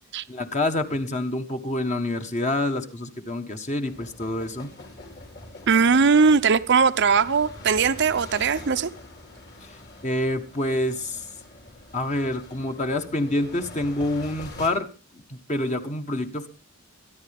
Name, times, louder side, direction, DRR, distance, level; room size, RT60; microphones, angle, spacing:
voice 1, 0.3-4.7 9.6-11.3 11.9-14.9 15.3-16.5, left 1 dB, 35° left, 1.4 m, -27 dB
sound 1, 3.8-14.7, left 2 dB, 50° left, 4.6 m, -44 dB
voice 2, 5.7-8.9, right 5 dB, 55° right, 0.7 m, -19 dB
24.0 x 11.0 x 3.6 m
head